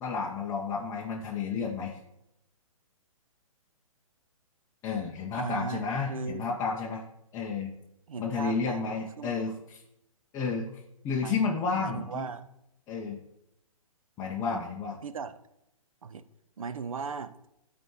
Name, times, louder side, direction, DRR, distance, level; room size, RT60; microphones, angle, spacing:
voice 1, 0.0-2.0 4.8-7.0 7.3-7.7 8.2-9.8 10.3-10.7 11.0-12.3 12.9-13.2 14.2-15.0, left 5 dB, 15° left, -2 dB, 0.5 m, -31 dB
voice 2, 5.3-6.4 8.1-9.4 11.2-12.5 14.5-14.6 15.0-15.3 16.0-16.3 16.6-17.3, right 5 dB, 70° right, 13 dB, 0.5 m, -38 dB
12.0 x 4.2 x 3.0 m, 0.84 s
figure-of-eight pair, 125°, 18 cm